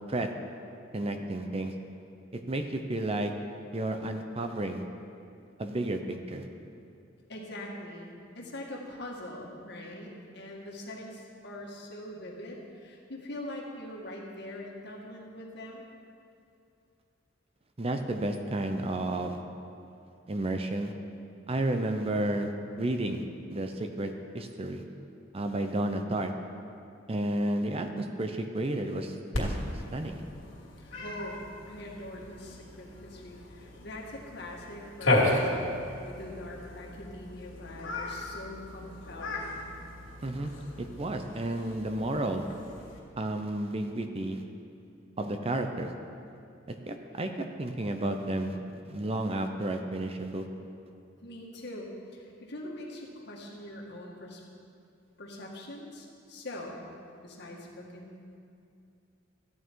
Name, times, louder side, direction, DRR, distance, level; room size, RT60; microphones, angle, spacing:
voice 1, 0.9-1.7 2.5-3.3 3.7-4.8 5.6-6.5 17.8-19.4 20.3-20.9 21.5-22.5 22.8-23.2 23.5-24.8 25.3-26.3 27.1-29.6 29.9-30.2 40.2-40.5 40.8-42.5 43.2-44.4 45.2-45.9 46.7-47.3 47.6-48.6 48.8-50.4, right 1 dB, 30° right, 6 dB, 0.6 m, -31 dB
voice 2, 7.3-15.9 30.8-31.4 31.7-39.8 51.2-54.4 55.2-56.8 57.2-58.1, left 1 dB, 60° left, -2 dB, 1.8 m, -43 dB
Cat, 29.3-43.0, left 1 dB, 90° left, 2.6 m, -35 dB
14.0 x 9.0 x 4.6 m, 2.5 s
head